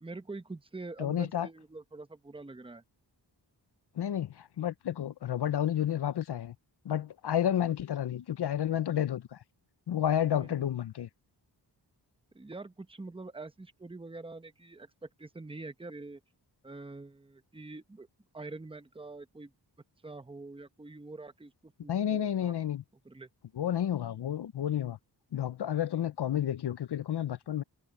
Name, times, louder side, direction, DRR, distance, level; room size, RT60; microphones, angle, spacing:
voice 1, 0.0-2.8 10.3-10.7 12.3-16.2 16.6-18.1 18.3-19.5 20.0-22.5 23.0-23.3, right 3 dB, 10° right, 0.9 m, -45 dB
voice 2, 1.0-1.5 4.0-6.5 6.8-9.4 9.9-11.1 21.9-22.8 23.5-25.0 25.3-27.6, left 10 dB, 65° left, 0.6 m, -31 dB
wide cardioid pair, 110°, 43 cm